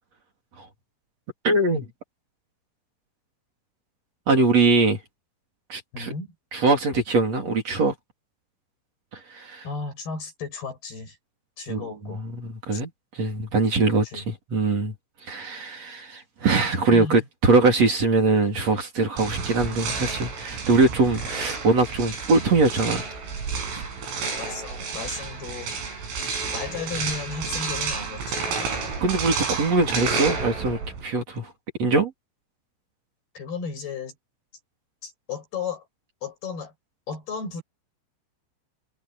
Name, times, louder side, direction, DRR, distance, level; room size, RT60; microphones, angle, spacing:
voice 1, 1.4-1.9 4.3-5.0 5.7-6.1 6.5-7.9 9.3-9.6 11.7-11.8 12.1-12.9 13.1-14.9 15.3-23.1 29.0-31.5 31.8-32.1, right 3 dB, 35° right, 3.9 m, -22 dB
voice 2, 5.9-6.3 9.6-11.2 11.6-12.3 12.7-12.8 14.0-14.3 16.9-17.3 24.4-25.7 26.1-28.7 33.4-34.1 35.0-35.9 36.2-36.7 37.1-37.6, left 5 dB, 50° left, 8.6 m, -34 dB
sound 1, 19.2-31.1, right 4 dB, 85° right, 9.4 m, -30 dB
omnidirectional pair, 5.7 m